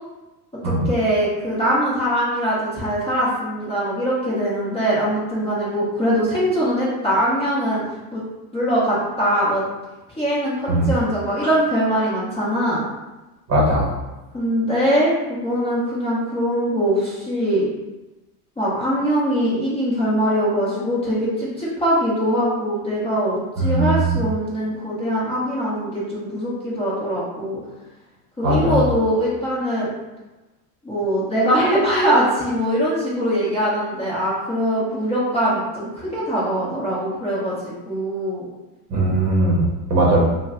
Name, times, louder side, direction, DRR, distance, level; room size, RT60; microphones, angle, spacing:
voice 1, 0.6-7.8 8.1-8.2 8.5-9.6 10.2-12.8 14.3-17.6 18.6-27.6 28.4-29.9 30.8-38.4, equal, 10° left, -8 dB, 0.8 m, -22 dB
voice 2, 13.5-13.9 23.6-24.2 28.4-28.9 38.9-40.2, right 1 dB, 35° right, -4 dB, 0.9 m, -19 dB
3.0 x 2.2 x 3.7 m, 1.1 s
supercardioid pair, 130°, 47 cm